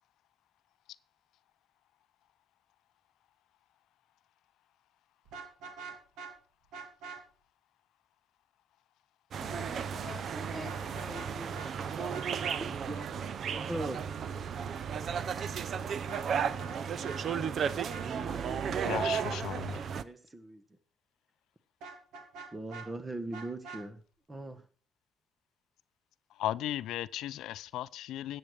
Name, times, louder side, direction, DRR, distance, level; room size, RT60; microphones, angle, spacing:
Vehicle horn car horn honking, 5.3-6.3 6.7-7.2 10.6-11.3 11.5-11.7 12.1-12.6 16.0-16.8 17.0-17.2 17.6-18.1 21.8-22.9 23.3-23.8, right 5 dB, 90° right, 2.6 m, -44 dB
sound 1, 9.3-20.0, right 7 dB, 55° right, 0.7 m, -34 dB
voice 1, 9.4-12.7 17.2-18.8, left 2 dB, 5° left, 3.6 m, -48 dB
voice 2, 12.3-14.0 18.1-18.8 20.0-20.6 22.5-24.0 24.3-24.6, right 1 dB, 20° right, 1.6 m, -41 dB
voice 3, 18.8-19.8 26.3-28.4, left 13 dB, 85° left, 0.5 m, -36 dB
13.5 x 8.7 x 4.9 m
cardioid pair, 100°, 0 cm